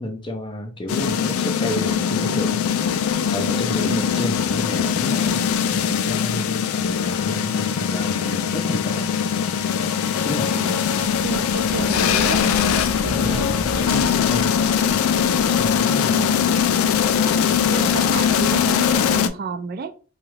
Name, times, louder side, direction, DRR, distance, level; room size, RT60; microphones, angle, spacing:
voice 1, 0.0-2.6 3.3-9.1 10.2-10.6 13.1-14.5 15.4-16.1, left 1 dB, 20° left, 0.5 m, -30 dB
sound 1, 0.9-19.3, left 7 dB, 85° left, 0.3 m, -21 dB
Engine / Tools, 7.0-13.4, left 2 dB, 60° left, 0.7 m, -38 dB
sound 2, 10.4-15.9, equal, 85° right, 1.0 m, -35 dB
voice 2, 10.5-12.4 13.0-13.5 16.0-16.5 17.7-19.9, right 4 dB, 45° right, 0.3 m, -31 dB
3.0 x 2.3 x 3.1 m
head